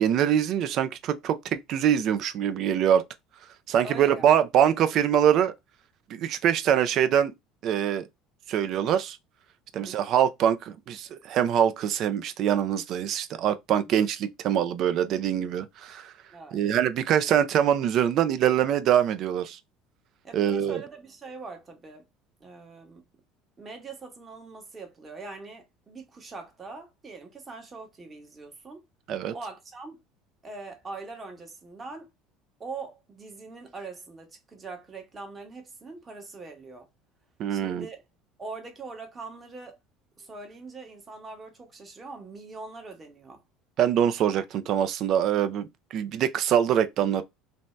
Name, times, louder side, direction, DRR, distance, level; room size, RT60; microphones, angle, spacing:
voice 1, 0.0-3.0 3.7-5.5 6.1-7.3 7.6-8.1 8.5-9.2 9.7-16.1 16.5-19.6 20.3-20.8 29.1-29.3 37.4-37.9 43.8-47.2, right 9 dB, 55° right, 0.4 m, -24 dB
voice 2, 3.8-4.3 9.7-10.0 13.8-13.9 16.3-16.6 20.2-22.0 22.4-23.0 23.6-28.8 29.3-30.0 30.4-32.1 32.6-36.9 37.5-38.0 38.4-39.8 40.2-43.4 44.4-44.5, right 3 dB, 25° right, 1.0 m, -42 dB
2.6 x 2.2 x 3.1 m
supercardioid pair, 100°, 0 cm